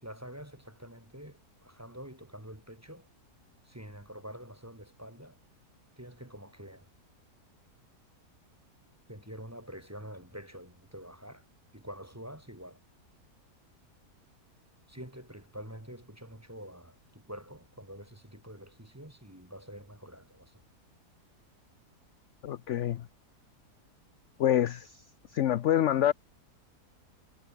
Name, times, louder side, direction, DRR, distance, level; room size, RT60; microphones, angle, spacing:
voice 1, 0.0-3.1 3.6-5.4 6.0-6.9 9.1-11.5 11.7-12.8 14.9-20.6, equal, 10° right, 2.5 m, -47 dB
voice 2, 22.4-23.1 24.4-25.0 25.3-26.1, left 11 dB, 60° left, 0.8 m, -26 dB
omnidirectional pair, 1.7 m